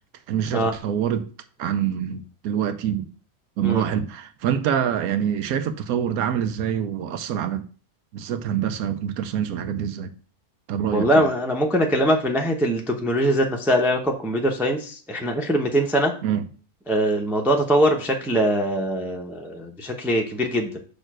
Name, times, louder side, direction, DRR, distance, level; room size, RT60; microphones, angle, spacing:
voice 1, 0.3-1.3 1.6-3.1 3.6-7.7 8.1-10.1 10.7-11.2 16.2-16.4, right 9 dB, 80° right, 1.1 m, -25 dB
voice 2, 10.9-16.1 16.9-20.8, equal, ahead, 0.5 m, -22 dB
6.6 x 3.2 x 6.0 m
omnidirectional pair, 1.5 m